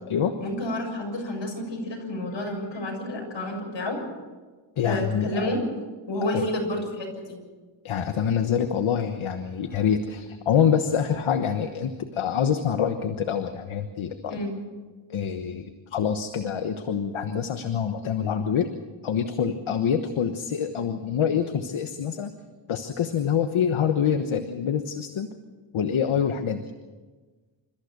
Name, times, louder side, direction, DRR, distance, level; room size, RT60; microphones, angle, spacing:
voice 1, 0.4-4.0 4.8-5.6 6.1-7.4 14.3-14.5, left 1 dB, 65° left, 1 dB, 7.1 m, -30 dB
voice 2, 4.8-5.5 6.3-6.4 7.8-14.4 15.1-18.7 19.0-22.3 22.7-25.3 25.7-26.6, left 8 dB, 85° left, 7 dB, 1.3 m, -26 dB
28.0 x 14.5 x 6.8 m, 1.3 s
cardioid pair, 80°, 47 cm